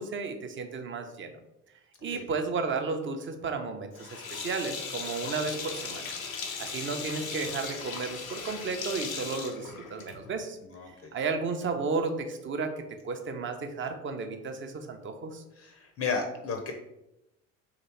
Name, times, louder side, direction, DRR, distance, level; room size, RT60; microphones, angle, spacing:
voice 1, 0.0-1.4 2.0-6.1 6.6-10.6 11.1-15.4, right 4 dB, 30° right, 6 dB, 0.6 m, -33 dB
Sink (filling or washing), 4.0-10.4, left 5 dB, 90° left, 0.6 m, -38 dB
voice 2, 5.2-5.6 10.6-11.1 15.6-16.7, left 5 dB, 35° left, 4 dB, 0.6 m, -34 dB
3.1 x 2.9 x 4.2 m, 0.89 s
figure-of-eight pair, 60°, 41 cm